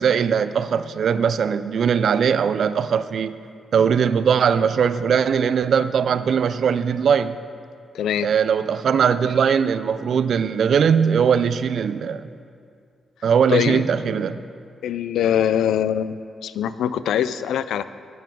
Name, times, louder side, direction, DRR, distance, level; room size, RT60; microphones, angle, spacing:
voice 1, 0.0-3.4 3.7-7.4 8.2-12.3 13.2-14.4, right 7 dB, 70° right, 13 dB, 0.4 m, -20 dB
voice 2, 7.9-8.3 13.5-13.8 14.8-16.2 16.4-17.8, left 9 dB, 90° left, 14 dB, 0.3 m, -22 dB
9.1 x 7.1 x 5.9 m, 2.3 s
cardioid pair, 75°, 0 cm